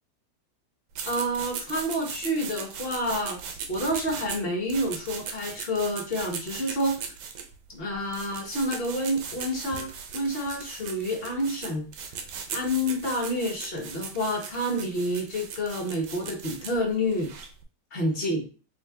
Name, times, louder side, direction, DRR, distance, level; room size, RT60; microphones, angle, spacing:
sound 1, 0.9-17.6, right 6 dB, 90° right, 1.3 m, -39 dB
voice 1, 1.0-7.0 7.7-11.9 12.5-17.3 17.9-18.5, equal, 40° left, 1 dB, 1.0 m, -29 dB
3.2 x 3.0 x 3.4 m, 0.37 s
omnidirectional pair, 1.8 m